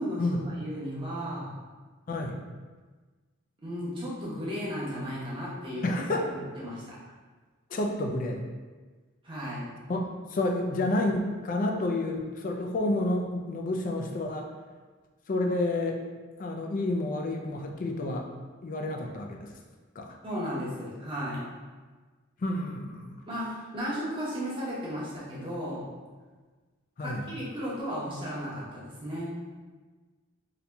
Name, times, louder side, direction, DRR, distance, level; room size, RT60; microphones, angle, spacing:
voice 1, 0.6-1.5 3.6-7.0 9.2-9.7 20.2-21.5 23.3-25.9 27.0-29.3, equal, 25° right, -8 dB, 0.9 m, -35 dB
voice 2, 2.1-2.4 5.8-6.3 7.7-8.4 9.9-14.5 15.3-16.0 16.4-18.3 18.6-19.5 20.0-20.2 22.4-23.2 27.0-27.3, left 2 dB, 40° left, 2 dB, 0.4 m, -30 dB
4.1 x 2.7 x 2.2 m, 1.4 s
head